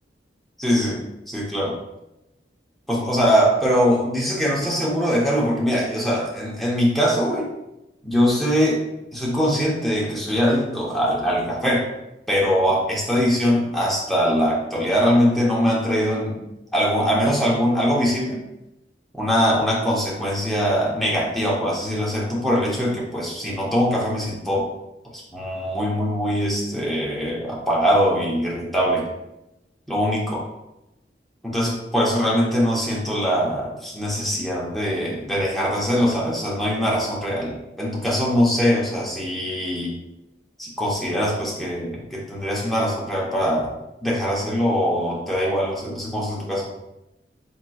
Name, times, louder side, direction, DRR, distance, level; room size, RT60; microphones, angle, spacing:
voice 1, 0.6-1.0 1.3-1.7 2.9-7.5 8.0-8.8 9.1-11.9 12.3-16.4 16.7-18.4 19.1-24.7 25.1-29.1 29.9-30.5 31.4-39.9 40.6-43.7 44.0-46.7, equal, ahead, -6 dB, 0.8 m, -22 dB
5.1 x 3.0 x 2.3 m, 0.92 s
head